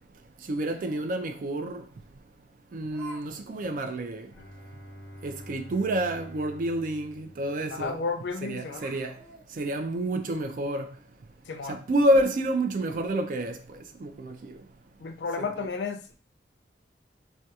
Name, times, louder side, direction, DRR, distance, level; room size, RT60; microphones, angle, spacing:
voice 1, 0.5-1.8 2.7-4.3 5.2-8.0 8.4-9.1 9.6-10.9 11.7-13.5 14.0-14.5 15.4-15.5, right 1 dB, 45° right, 0.3 m, -28 dB
Laughter, 0.7-1.1 1.9-2.0 2.9-3.2 3.5-3.6 4.1-4.2 4.6-4.7 6.6-6.7 7.0-7.1 8.1-8.3 8.7-10.3, right 2 dB, 25° right, 0.8 m, -47 dB
Bowed string instrument, 4.3-8.2, equal, 15° left, 0.7 m, -47 dB
voice 2, 7.7-8.9 11.5-11.8 15.0-16.2, left 4 dB, 75° left, 0.4 m, -32 dB
2.3 x 2.2 x 2.7 m
head